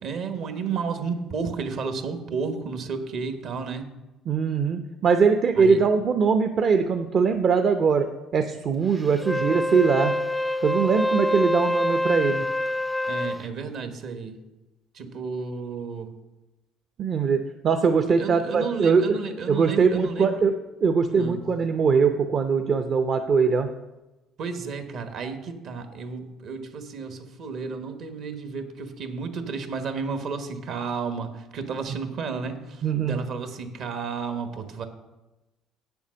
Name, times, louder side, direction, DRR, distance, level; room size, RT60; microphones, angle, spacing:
voice 1, 0.0-3.9 5.5-5.9 13.1-14.4 14.9-16.1 18.1-20.5 21.1-21.4 24.4-34.9, right 5 dB, 65° right, 8 dB, 1.3 m, -32 dB
voice 2, 4.3-8.1 8.3-10.1 10.6-12.4 17.0-19.2 19.5-20.5 20.8-23.7 32.8-33.2, right 5 dB, 50° right, 6 dB, 0.6 m, -21 dB
Wind instrument woodwind instrument, 9.2-13.4, left 1 dB, 5° left, 0.3 m, -26 dB
8.3 x 7.1 x 6.3 m, 1.1 s
supercardioid pair, 90°, 0 cm